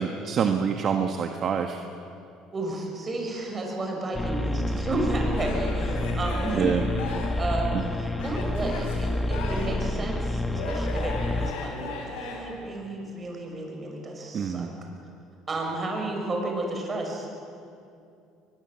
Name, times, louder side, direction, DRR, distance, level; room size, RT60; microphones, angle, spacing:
voice 1, 0.0-1.8 6.5-6.8 7.7-7.8 14.3-14.7, right 7 dB, 45° right, 5 dB, 1.5 m, -26 dB
voice 2, 2.5-6.7 7.4-14.7 15.5-17.3, right 2 dB, 25° right, 1 dB, 6.3 m, -32 dB
sound 1, 4.1-11.5, left 1 dB, 10° left, 1.3 m, -29 dB
Male speech man speaking / Yell / Laughter, 5.3-7.5 8.1-9.9 10.5-12.4, left 3 dB, 90° left, 6.6 m, -36 dB
23.0 x 21.5 x 7.7 m, 2.5 s
cardioid pair, 110°, 0 cm